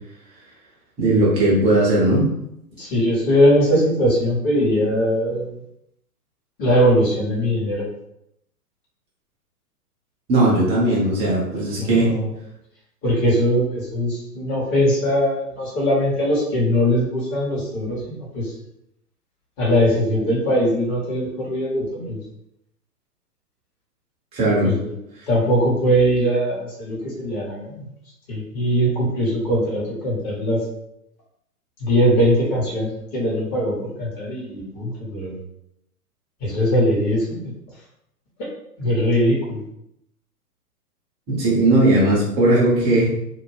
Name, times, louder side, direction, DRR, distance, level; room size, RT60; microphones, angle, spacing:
voice 1, 1.0-2.3 10.3-12.1 24.3-24.7 41.3-43.1, right 1 dB, 15° right, -6 dB, 0.6 m, -18 dB
voice 2, 2.8-5.5 6.6-7.8 11.5-12.3 13.0-18.5 19.6-22.2 24.6-24.9 25.3-27.8 28.3-30.6 31.8-35.3 36.4-37.5 38.4-38.5 38.8-39.6, equal, 25° left, -5 dB, 1.0 m, -21 dB
2.5 x 2.1 x 3.2 m, 0.79 s
figure-of-eight pair, 115°, 47 cm